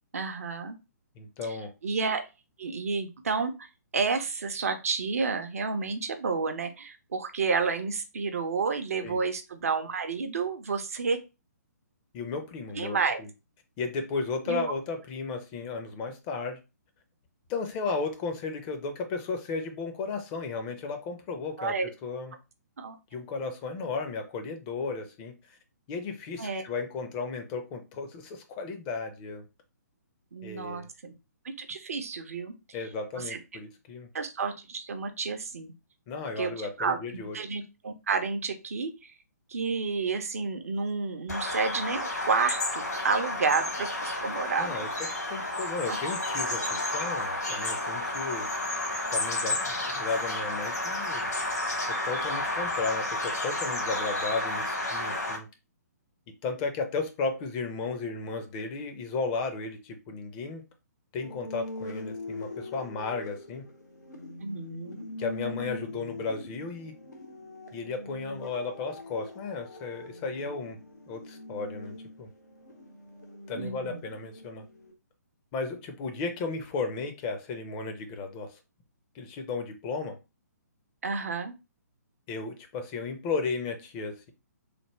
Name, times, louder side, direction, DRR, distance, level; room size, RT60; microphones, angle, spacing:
voice 1, 0.1-0.8 1.4-1.6 1.8-2.2 2.6-3.5 3.9-11.2 12.7-13.2 14.5-14.7 21.6-21.9 22.8-22.9 26.4-26.6 30.3-31.1 31.6-32.5 33.3-33.4 34.1-35.7 36.4-36.5 36.8-39.1 39.5-44.8 45.9-46.0 64.4-65.0 73.5-74.0 81.0-81.5, right 4 dB, 55° right, 0.6 m, -30 dB
voice 2, 1.2-1.7 9.0-9.2 12.1-13.3 13.8-16.6 17.5-21.8 22.0-22.3 23.1-25.3 25.9-29.4 30.4-30.9 32.7-34.1 36.1-37.4 44.6-44.9 45.3-48.5 49.1-51.3 51.9-55.5 56.4-60.6 61.1-63.6 65.2-66.9 67.7-70.8 71.1-72.3 73.5-74.6 75.5-78.6 79.1-80.2 82.3-84.3, left 4 dB, 20° left, 0.5 m, -34 dB
Bird vocalization bird call bird song, 41.3-55.4, left 2 dB, 70° left, 1.2 m, -31 dB
sound 1, 61.2-74.9, left 2 dB, 85° left, 1.0 m, -42 dB
3.3 x 2.1 x 3.1 m
figure-of-eight pair, 130°, 9 cm